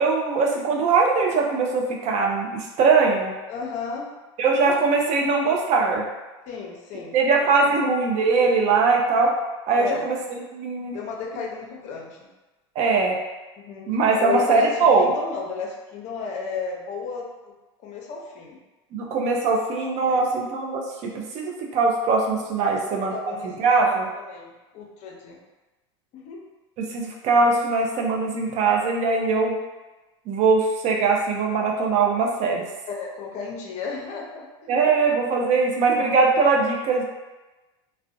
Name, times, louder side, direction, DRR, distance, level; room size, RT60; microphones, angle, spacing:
voice 1, 0.0-3.3 4.4-6.1 7.1-9.3 9.7-10.2 10.5-11.0 12.8-13.2 13.9-15.1 18.9-24.1 26.9-29.6 30.3-32.6 34.7-37.0, right 4 dB, 50° right, 0 dB, 0.5 m, -21 dB
voice 2, 3.5-4.1 6.5-7.2 7.6-7.8 9.8-10.1 10.9-12.3 13.6-17.2 17.8-18.6 20.0-20.3 22.6-25.4 26.1-26.4 32.9-34.5, left 5 dB, 50° left, 0 dB, 0.6 m, -33 dB
2.5 x 2.0 x 2.5 m, 1.1 s
supercardioid pair, 105°, 15 cm